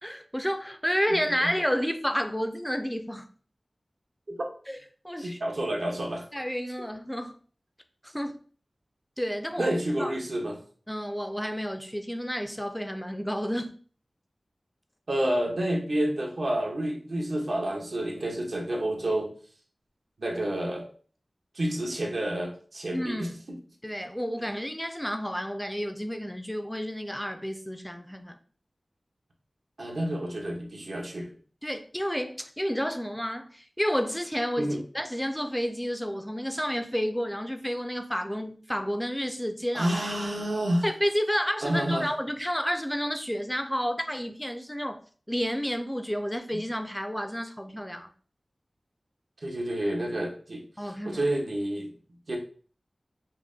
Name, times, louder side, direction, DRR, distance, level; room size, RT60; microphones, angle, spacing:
voice 1, 0.0-3.3 4.7-4.8 5.0-5.4 6.3-7.4 8.0-8.4 9.2-10.1 10.9-13.7 22.9-23.4 23.8-28.4 31.6-40.0 40.8-48.1 50.8-51.2, equal, 5° left, 0.4 m, -30 dB
voice 2, 5.2-6.2 9.6-10.6 15.1-19.3 20.2-20.9 21.5-23.1 29.8-31.3 34.6-34.8 39.7-40.8 41.6-42.0 49.4-50.6 51.0-51.9 52.3-52.4, right 1 dB, 75° right, 0.9 m, -29 dB
5.4 x 2.1 x 2.6 m
wide cardioid pair, 70°, 0 cm